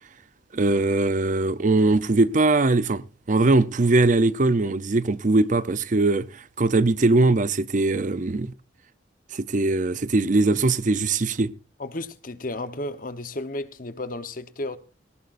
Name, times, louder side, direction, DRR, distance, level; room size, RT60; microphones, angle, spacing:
voice 1, 0.5-6.3 6.6-8.5 9.3-11.5, right 2 dB, 40° right, 0.6 m, -21 dB
voice 2, 11.8-14.8, left 2 dB, 45° left, 1.0 m, -33 dB
18.5 x 18.0 x 2.6 m
head